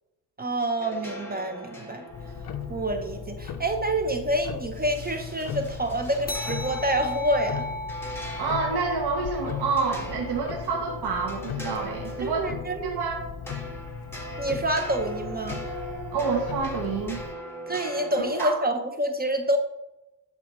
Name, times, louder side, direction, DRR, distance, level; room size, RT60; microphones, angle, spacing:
voice 1, 0.4-2.0 2.7-7.7 12.2-13.0 14.4-15.6 17.7-19.6, right 1 dB, 25° right, 6 dB, 0.8 m, -27 dB
sound 1, 0.8-18.5, equal, 5° left, 2.0 m, -41 dB
Tick-tock, 2.1-17.4, left 7 dB, 65° left, 0.8 m, -38 dB
sound 2, 6.3-11.2, left 1 dB, 25° left, 0.8 m, -37 dB
voice 2, 8.4-12.4 12.8-13.2 16.1-17.2 18.4-18.6, right 4 dB, 80° right, -1 dB, 1.3 m, -28 dB
11.5 x 4.1 x 3.1 m, 0.95 s
cardioid pair, 85°, 40 cm